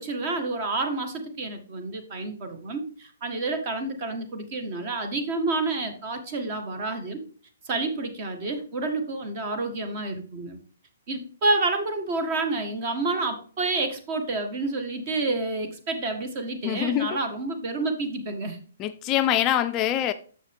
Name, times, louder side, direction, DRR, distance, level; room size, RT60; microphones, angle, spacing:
voice 1, 0.0-7.2 7.6-10.6 11.1-18.6, right 3 dB, 40° right, 1.5 m, -29 dB
voice 2, 16.6-17.1 18.8-20.1, left 12 dB, 25° left, 0.4 m, -24 dB
7.0 x 6.3 x 3.5 m
hypercardioid pair, 155°, 0 cm